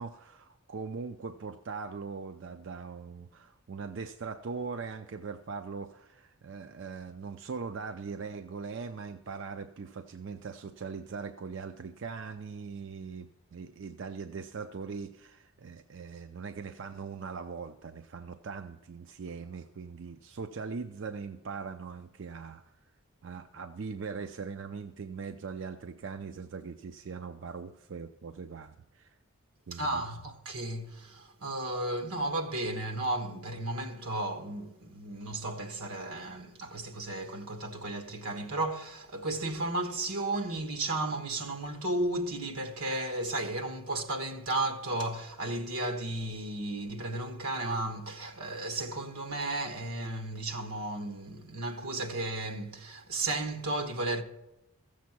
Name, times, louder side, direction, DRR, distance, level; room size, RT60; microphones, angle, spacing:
voice 1, 0.0-22.6 23.2-29.2 29.7-30.0, right 5 dB, 55° right, 0.4 m, -41 dB
voice 2, 29.7-54.2, right 2 dB, 85° right, 1.3 m, -34 dB
14.5 x 7.3 x 6.0 m
head